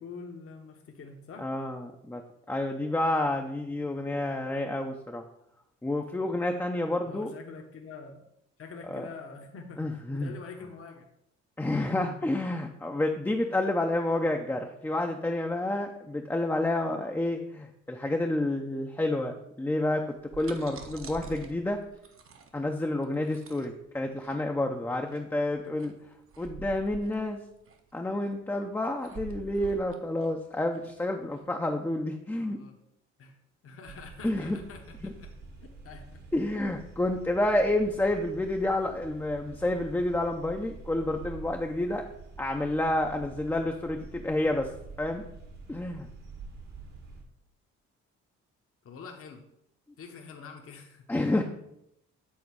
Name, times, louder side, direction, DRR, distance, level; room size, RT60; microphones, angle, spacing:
voice 1, 0.0-1.5 7.0-8.2 8.6-11.1 32.4-32.8 33.2-33.4 33.6-35.3 35.8-36.2 48.8-49.4 50.0-51.0, left 5 dB, 50° left, 3 dB, 0.9 m, -45 dB
voice 2, 1.4-5.2 5.8-7.3 8.9-9.1 9.8-10.3 11.6-21.8 22.5-25.9 26.4-27.4 27.9-32.6 34.2-34.6 35.0-35.1 36.3-42.0 42.4-44.7 45.0-45.2 45.7-46.1 51.1-51.4, left 1 dB, 10° left, 2 dB, 0.5 m, -29 dB
sound 1, 20.0-31.4, right 5 dB, 45° right, 0.8 m, -47 dB
sound 2, 33.8-47.2, right 3 dB, 65° right, 1.4 m, -47 dB
7.4 x 3.9 x 4.6 m, 0.79 s
cardioid pair, 90°, 30 cm